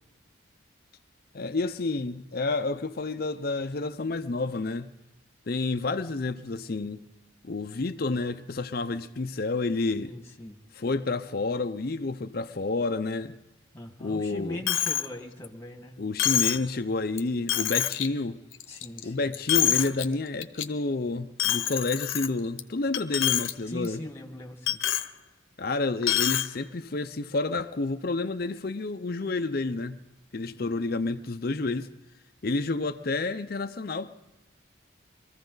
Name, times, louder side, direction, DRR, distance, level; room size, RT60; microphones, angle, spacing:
voice 1, 1.3-4.9 5.5-7.0 7.4-10.1 10.7-13.4 14.0-14.6 16.0-18.4 19.0-24.0 25.6-30.0 30.3-31.9 32.4-34.1, left 3 dB, 50° left, 0.6 m, -29 dB
voice 2, 10.0-10.6 13.7-15.9 18.7-19.1 23.7-24.8, left 1 dB, 15° left, 1.6 m, -40 dB
Coin (dropping), 14.7-15.1 15.4-15.5 16.2-16.7 17.2-17.3 17.5-18.1 18.5-19.0 19.3-20.0 20.4-20.6 21.4-22.6 22.9-23.5 23.8-23.9 24.7-25.1 26.0-26.5, left 10 dB, 85° left, 0.9 m, -26 dB
23.0 x 14.5 x 3.9 m
head